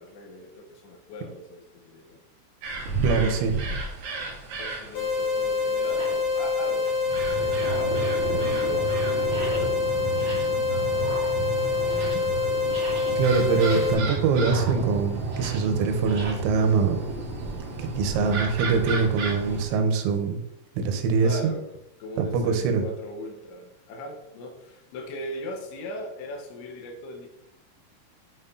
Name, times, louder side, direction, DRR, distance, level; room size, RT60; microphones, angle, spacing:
voice 1, 0.0-2.2 4.6-13.1 18.1-18.4 21.2-21.7 22.0-27.3, left 1 dB, 80° left, 3 dB, 3.0 m, -40 dB
sound 1, 2.6-19.7, right 3 dB, 70° right, 2.0 m, -32 dB
voice 2, 3.0-3.6 13.2-17.0 17.8-20.4 20.8-21.4 22.2-22.8, right 5 dB, 85° right, 5 dB, 3.1 m, -23 dB
sound 2, 4.3-4.4 5.1-5.2 5.8-6.3 6.6-7.1 7.5-8.1 8.4-8.8 9.2-9.8 10.1-10.6 10.9-12.3 12.6-16.3, right 2 dB, 40° right, 1.9 m, -40 dB
sound 3, 4.9-13.9, left 4 dB, 65° left, 1.8 m, -26 dB
7.9 x 5.6 x 2.6 m, 0.88 s
omnidirectional pair, 5.5 m